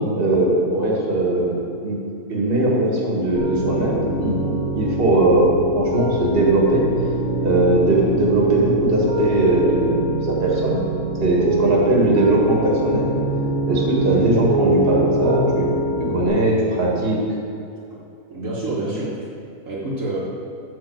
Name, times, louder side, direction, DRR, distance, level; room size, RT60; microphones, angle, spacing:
voice 1, 0.0-1.6 1.8-2.0 2.3-6.9 7.4-10.8 11.2-13.1 13.7-15.7 16.0-17.2, right 1 dB, 40° right, -3 dB, 1.8 m, -19 dB
Piano, 3.4-16.3, right 1 dB, 10° right, 2.0 m, -23 dB
voice 2, 18.3-19.2 19.7-20.2, right 2 dB, 60° right, -7 dB, 1.7 m, -27 dB
9.1 x 4.4 x 7.3 m, 2.5 s
omnidirectional pair, 1.6 m